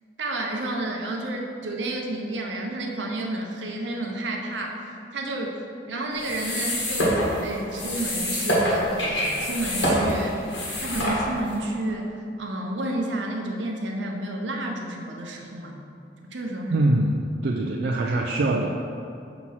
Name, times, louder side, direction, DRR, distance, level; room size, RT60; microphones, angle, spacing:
voice 1, 0.2-4.8 5.1-5.6 5.9-10.4 10.8-15.8 16.2-16.8, right 1 dB, 80° right, 1 dB, 0.7 m, -30 dB
sound 1, 6.1-11.6, equal, 75° left, 1.5 m, -26 dB
voice 2, 16.7-18.7, right 2 dB, 60° right, 0 dB, 0.3 m, -23 dB
6.0 x 2.9 x 5.5 m, 2.6 s
head